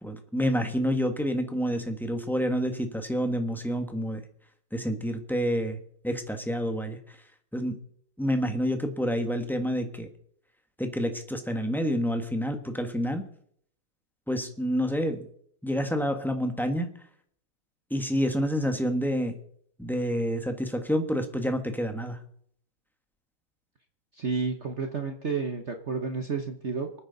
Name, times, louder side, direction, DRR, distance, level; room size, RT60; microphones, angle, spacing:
voice 1, 0.0-4.2 4.7-7.2 7.5-7.8 8.2-10.1 10.8-13.2 14.3-15.3 15.6-16.9 17.9-19.3 19.8-22.2, equal, ahead, 5 dB, 1.0 m, -28 dB
voice 2, 24.2-27.0, right 4 dB, 40° right, 5 dB, 1.1 m, -31 dB
25.0 x 9.5 x 4.0 m, 0.65 s
omnidirectional pair, 2.2 m